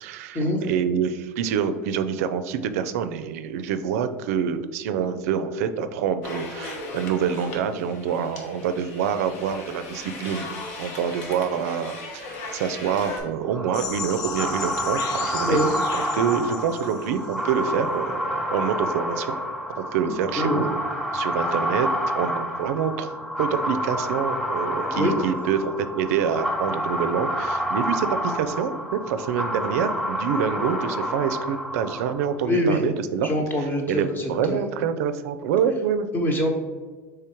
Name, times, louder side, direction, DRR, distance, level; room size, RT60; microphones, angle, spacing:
voice 1, 0.0-10.5 10.8-15.6 15.9-19.4 19.8-20.7 21.1-21.9 22.1-23.1 23.4-33.3 33.6-36.1, right 7 dB, 80° right, 11 dB, 0.4 m, -26 dB
sound 1, 6.2-13.2, left 2 dB, 80° left, 0.9 m, -37 dB
sound 2, 13.5-32.4, equal, 5° left, 0.6 m, -29 dB
sound 3, 13.7-17.3, left 7 dB, 50° left, 0.5 m, -35 dB
voice 2, 32.4-32.8 33.2-34.6 36.1-36.5, equal, 25° left, 2 dB, 1.0 m, -24 dB
3.5 x 3.2 x 4.4 m, 1.4 s
hypercardioid pair, 90°, 8 cm